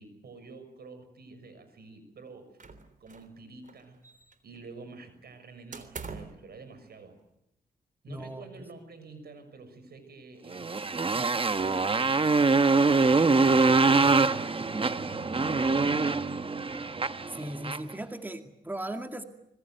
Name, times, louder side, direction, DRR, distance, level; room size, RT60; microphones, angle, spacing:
voice 1, 0.0-2.6 3.0-4.0 4.4-7.2 8.0-12.6 13.1-16.6, right 3 dB, 75° right, 10 dB, 6.2 m, -48 dB
sound 1, 2.6-3.4 3.6-4.6 5.7-6.5, right 4 dB, 50° right, 3.4 m, -44 dB
voice 2, 8.1-8.5 17.3-19.2, right 1 dB, 10° right, 6 dB, 2.2 m, -38 dB
Motorcycle, 10.5-17.9, right 3 dB, 35° right, 1.2 m, -24 dB
25.5 x 21.5 x 9.2 m, 0.85 s
cardioid pair, 70°, 16 cm